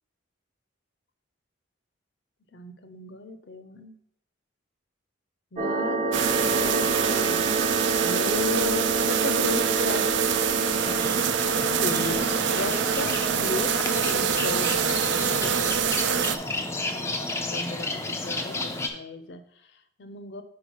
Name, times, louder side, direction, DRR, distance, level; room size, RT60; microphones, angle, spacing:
voice 1, 2.5-4.0 5.5-10.4 11.8-16.4 16.9-20.4, left 2 dB, 60° left, 10 dB, 0.6 m, -35 dB
sound 1, 5.6-16.4, right 3 dB, 30° right, 1.0 m, -31 dB
sound 2, 6.1-16.4, right 7 dB, 65° right, 0.4 m, -25 dB
sound 3, 10.7-18.9, left 2 dB, 15° left, 0.4 m, -32 dB
5.6 x 4.8 x 4.6 m, 0.70 s
head